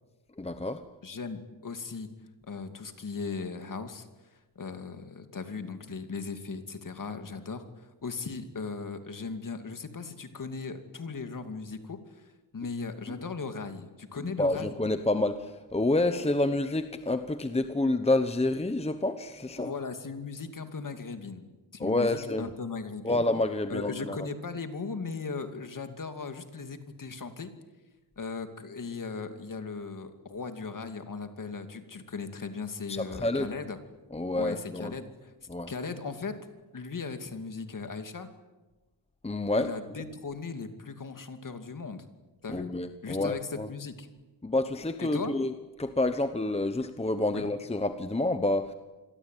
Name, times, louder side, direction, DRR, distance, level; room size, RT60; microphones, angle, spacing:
voice 1, 0.4-0.8 14.2-19.7 21.8-22.5 23.0-24.2 32.9-33.5 34.1-34.9 35.5-35.7 39.2-39.7 42.5-43.7 44.4-45.5 45.8-48.7, left 2 dB, 15° left, 9 dB, 1.0 m, -28 dB
voice 2, 1.0-2.1 2.5-4.1 4.6-14.8 19.6-21.4 21.7-23.2 23.7-27.5 28.2-33.8 34.3-35.3 35.7-36.3 36.7-38.3 39.6-42.0 42.4-42.7 43.0-44.1 45.0-45.3 47.3-47.5, left 4 dB, 40° left, 8 dB, 2.6 m, -38 dB
28.0 x 22.0 x 9.2 m, 1.1 s
wide cardioid pair, 165°, 47 cm